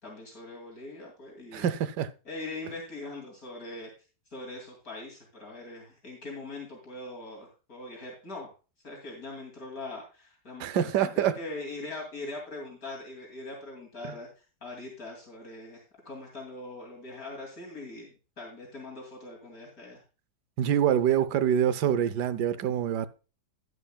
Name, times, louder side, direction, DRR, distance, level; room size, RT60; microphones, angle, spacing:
voice 1, 0.0-1.7 2.2-3.9 4.3-8.5 8.8-20.0, left 2 dB, 55° left, 3.1 m, -42 dB
voice 2, 1.5-2.1 10.6-11.3 20.6-23.1, right 9 dB, 75° right, 1.3 m, -25 dB
11.0 x 11.0 x 2.3 m
omnidirectional pair, 1.9 m